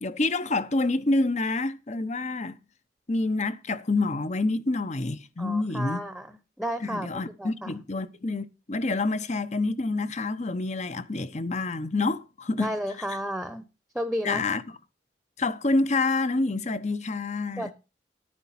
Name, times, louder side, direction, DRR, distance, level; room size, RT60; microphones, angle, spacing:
voice 1, 0.0-2.6 3.1-6.0 6.8-12.7 14.2-14.6 15.4-17.7, left 3 dB, 40° left, 0.9 m, -27 dB
voice 2, 5.4-7.7 12.6-13.6 13.9-14.4 17.6-17.7, equal, ahead, 0.9 m, -32 dB
11.0 x 9.9 x 4.2 m
head